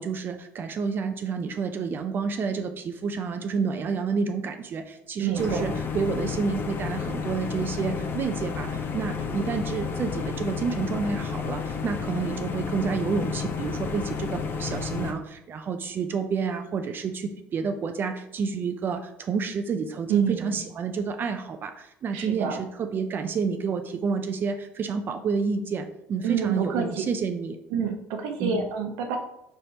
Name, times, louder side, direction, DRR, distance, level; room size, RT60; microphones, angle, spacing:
voice 1, 0.0-27.6 28.4-28.6, right 5 dB, 40° right, 6 dB, 0.4 m, -29 dB
voice 2, 5.2-5.7 20.1-20.5 22.1-22.6 26.2-27.0 27.7-29.2, right 6 dB, 85° right, 4 dB, 0.7 m, -28 dB
sound 1, 5.3-15.1, left 6 dB, 45° left, 0.6 m, -31 dB
4.3 x 3.3 x 2.7 m, 0.83 s
supercardioid pair, 100°, 5 cm